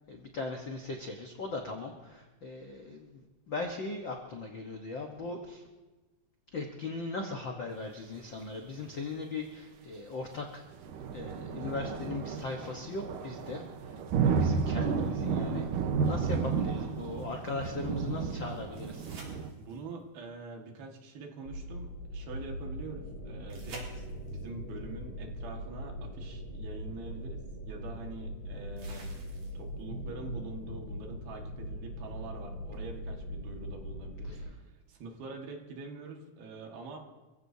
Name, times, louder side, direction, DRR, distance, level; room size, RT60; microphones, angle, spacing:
voice 1, 0.1-5.6 6.5-10.6 11.1-13.6 14.2-15.6 16.0-19.1 28.8-29.1 34.3-34.4, left 3 dB, 85° left, 1 dB, 1.0 m, -39 dB
sound 1, 10.8-19.5, right 6 dB, 70° right, 2.5 m, -32 dB
sound 2, 18.7-20.0 23.5-24.5 26.4-26.5 28.8-29.8 32.7-32.8, right 2 dB, 55° right, 4.5 m, -50 dB
voice 2, 19.6-29.1 29.6-37.0, right 3 dB, 85° right, 2 dB, 3.7 m, -45 dB
sound 3, 21.4-34.5, equal, 50° left, 3.5 m, -41 dB
27.5 x 16.0 x 2.8 m, 1.2 s
omnidirectional pair, 4.2 m